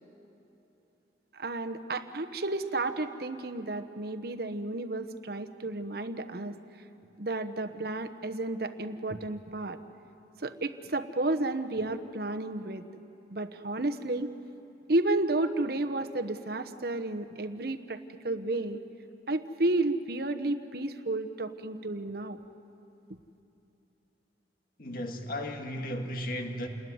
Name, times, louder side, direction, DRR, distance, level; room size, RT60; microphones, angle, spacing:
voice 1, 1.3-6.6 7.2-9.8 10.4-12.8 13.3-14.3 14.9-18.8 19.3-22.4, right 2 dB, 55° right, 7 dB, 1.1 m, -32 dB
voice 2, 24.8-26.7, equal, 50° left, 4 dB, 1.9 m, -35 dB
29.0 x 20.5 x 9.4 m, 3.0 s
head